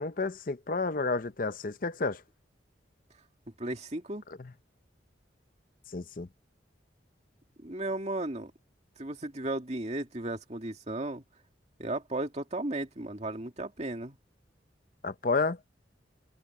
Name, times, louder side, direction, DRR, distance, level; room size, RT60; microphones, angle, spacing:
voice 1, 0.0-2.2 4.4-4.5 5.9-6.3 15.0-15.6, left 3 dB, 50° left, 0.7 m, -30 dB
voice 2, 3.6-4.2 7.6-8.5 9.0-11.2 11.8-14.2, right 2 dB, 35° right, 2.3 m, -35 dB
open air
head